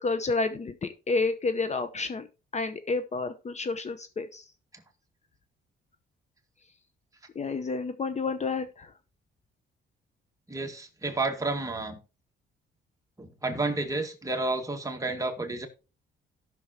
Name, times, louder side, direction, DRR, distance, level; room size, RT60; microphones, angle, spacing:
voice 1, 0.0-2.3 2.5-4.5 7.3-8.9, left 3 dB, 35° left, 0.8 m, -30 dB
voice 2, 10.5-12.0 13.2-15.7, right 2 dB, 15° right, 2.0 m, -31 dB
17.0 x 6.2 x 2.9 m
cardioid pair, 90°, 20 cm